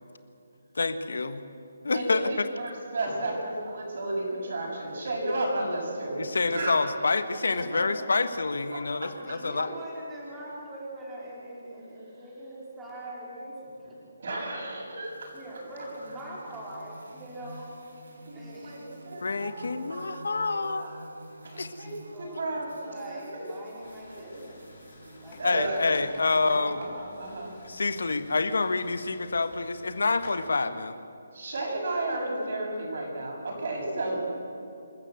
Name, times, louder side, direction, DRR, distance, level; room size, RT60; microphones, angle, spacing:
voice 1, 0.7-1.4 1.8-2.5 6.2-9.7 19.2-21.7 25.4-26.8 27.6-31.0, left 3 dB, 80° left, 11 dB, 1.4 m, -28 dB
voice 2, 1.9-6.2 6.5-7.0 8.7-9.4 14.2-15.3 18.3-21.0 21.4-23.4 24.1-24.2 25.4-25.9 26.3-27.9 31.3-34.2, right 2 dB, 50° right, -1 dB, 7.4 m, -33 dB
voice 3, 7.5-8.1 8.7-8.8 9.2-14.2 15.3-17.7 18.1-19.2 22.1-24.7 25.1-26.9 33.9-34.2, right 1 dB, 5° right, -6 dB, 4.3 m, -43 dB
sound 1, 15.0-27.8, equal, 80° right, 5.6 m, -50 dB
sound 2, 23.8-30.3, left 3 dB, 45° left, 4.3 m, -51 dB
27.0 x 14.0 x 8.0 m, 2.7 s
hypercardioid pair, 170°, 0 cm